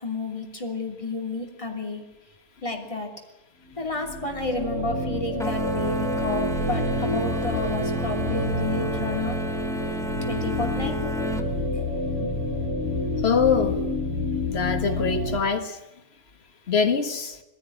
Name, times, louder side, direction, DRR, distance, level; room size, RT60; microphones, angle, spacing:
voice 1, 0.0-2.0 2.6-3.1 3.8-9.4 10.3-11.0 12.2-12.3, left 2 dB, 25° left, 2 dB, 3.2 m, -31 dB
sound 1, 3.9-15.4, left 1 dB, 85° right, 5.1 m, -28 dB
sound 2, 5.4-11.5, right 1 dB, ahead, 1.9 m, -33 dB
voice 2, 13.2-13.8 14.5-15.8 16.7-17.4, left 6 dB, 55° left, 6 dB, 1.9 m, -23 dB
21.5 x 16.0 x 10.0 m, 0.96 s
omnidirectional pair, 1.3 m